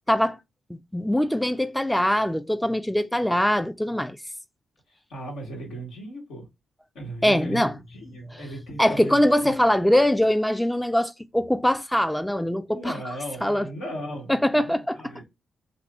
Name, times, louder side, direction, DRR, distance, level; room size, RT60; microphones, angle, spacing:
voice 1, 0.7-4.2 7.2-7.7 8.3-8.4 8.8-13.0 13.4-13.7 14.3-15.0, left 1 dB, 5° left, 0.3 m, -22 dB
voice 2, 5.1-6.5 6.9-9.5 12.6-15.2, right 1 dB, 80° left, 1.3 m, -37 dB
2.7 x 2.4 x 3.4 m
supercardioid pair, 45°, 0 cm